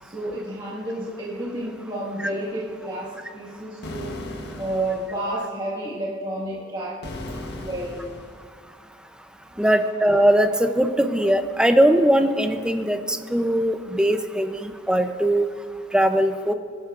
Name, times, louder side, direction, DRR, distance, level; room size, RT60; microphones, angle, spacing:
voice 1, 0.0-4.1 4.5-7.2 7.6-8.0 9.5-9.7, right 1 dB, 25° right, -7 dB, 1.7 m, -31 dB
sound 1, 3.8-5.2 7.0-8.5, left 1 dB, 55° left, 1.1 m, -36 dB
voice 2, 9.6-15.5 15.9-16.5, right 1 dB, 5° right, 7 dB, 0.6 m, -20 dB
19.0 x 11.5 x 2.5 m, 2.3 s
head